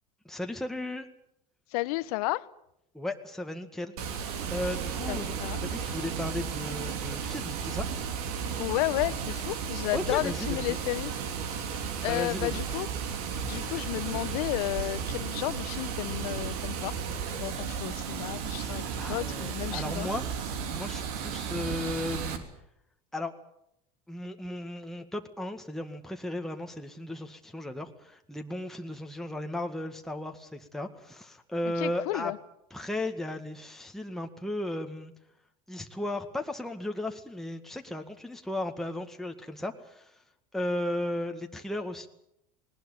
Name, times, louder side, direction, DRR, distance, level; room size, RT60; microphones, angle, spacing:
voice 1, 0.2-1.1 2.9-3.9 4.5-7.9 9.9-10.8 12.0-12.6 17.6-17.8 19.0-20.2 20.7-22.4 23.1-23.3 24.1-32.3 32.7-35.1 35.7-40.2 40.5-42.1, left 1 dB, ahead, 4 dB, 1.9 m, -35 dB
voice 2, 1.7-2.5 5.1-5.6 8.6-11.1 12.0-12.9 13.4-17.0 17.4-20.1 31.8-32.4, left 21 dB, 70° left, 17 dB, 1.0 m, -32 dB
Water, 4.0-22.4, right 6 dB, 70° right, 3.2 m, -34 dB
19.5 x 19.5 x 9.2 m, 0.78 s
hypercardioid pair, 85°, 20 cm